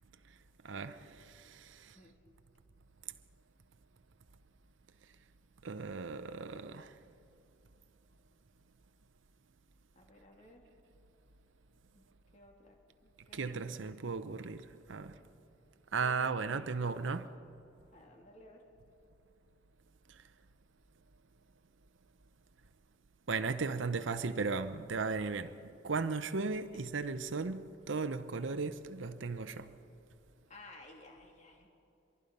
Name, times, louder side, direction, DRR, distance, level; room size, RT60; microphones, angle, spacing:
voice 1, 0.6-2.0 5.6-7.0 13.3-15.2 15.9-17.3 20.1-20.2 23.3-29.8, right 4 dB, 75° right, 0.7 m, -36 dB
voice 2, 1.8-2.2 9.9-10.7 11.9-13.7 16.0-17.2 17.9-18.7 30.5-31.7, left 1 dB, 40° left, 2.8 m, -57 dB
24.5 x 23.0 x 5.4 m
head